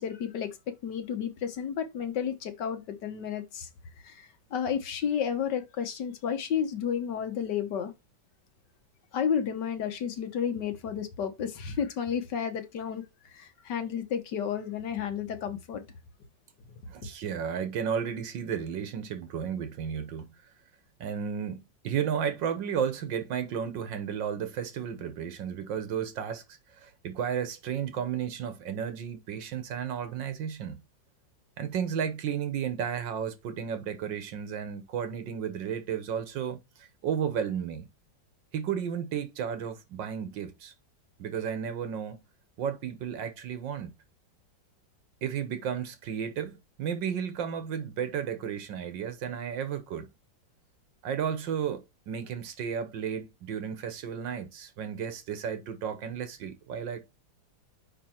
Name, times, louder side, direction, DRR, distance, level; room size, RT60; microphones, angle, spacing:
voice 1, 0.0-3.7 4.0-7.9 9.1-13.0 13.3-15.8, left 8 dB, 65° left, 1.7 m, -32 dB
voice 2, 16.9-20.4 21.0-30.8 31.6-37.9 38.5-40.7 41.2-42.2 42.6-43.9 45.2-50.1 51.0-57.0, right 8 dB, 75° right, 1.7 m, -33 dB
5.4 x 5.0 x 4.4 m
omnidirectional pair, 2.0 m